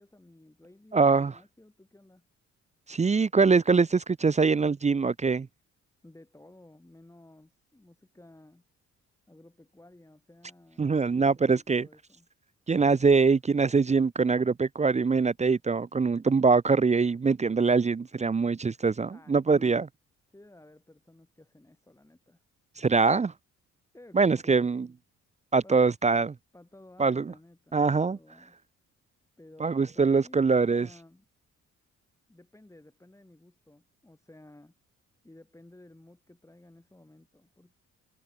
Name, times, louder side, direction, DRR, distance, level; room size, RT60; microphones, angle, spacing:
voice 1, 0.0-2.3 6.0-8.6 9.3-12.3 19.1-19.8 20.3-22.4 23.9-24.7 25.6-25.8 26.5-28.6 29.4-31.3 32.3-34.7 35.2-37.7, left 1 dB, 10° left, 6.2 m, -55 dB
voice 2, 0.9-1.3 2.9-5.5 10.8-11.9 12.7-19.9 22.8-23.3 24.1-24.9 25.5-26.3 27.0-27.2 27.7-28.2 29.6-30.9, right 4 dB, 25° right, 0.7 m, -23 dB
cardioid pair, 90°, 30 cm